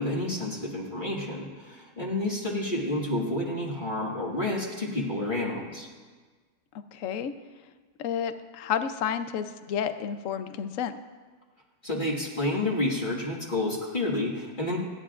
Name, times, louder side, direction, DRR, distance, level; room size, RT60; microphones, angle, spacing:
voice 1, 0.0-5.9 11.8-14.8, left 1 dB, 30° left, -3 dB, 2.0 m, -29 dB
voice 2, 6.9-7.3 8.0-11.0, left 8 dB, 60° left, 10 dB, 0.9 m, -31 dB
28.5 x 10.5 x 2.5 m, 1.4 s
omnidirectional pair, 1.8 m